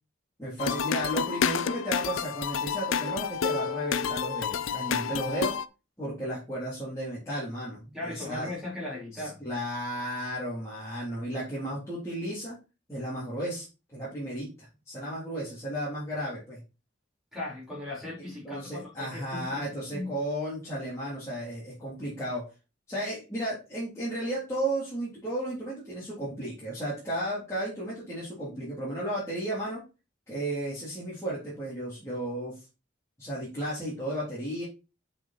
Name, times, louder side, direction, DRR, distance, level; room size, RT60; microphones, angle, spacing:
voice 1, 0.4-5.5 6.0-8.5 9.4-12.5 12.9-13.7 13.9-16.6 18.4-22.4 22.9-29.8 30.3-32.5 33.2-34.6, right 1 dB, 15° left, 3.4 m, -34 dB
sound 1, 0.6-5.6, left 7 dB, 85° left, 0.5 m, -29 dB
voice 2, 7.9-9.4 17.3-20.2, left 1 dB, ahead, 4.5 m, -38 dB
7.5 x 5.6 x 4.2 m
head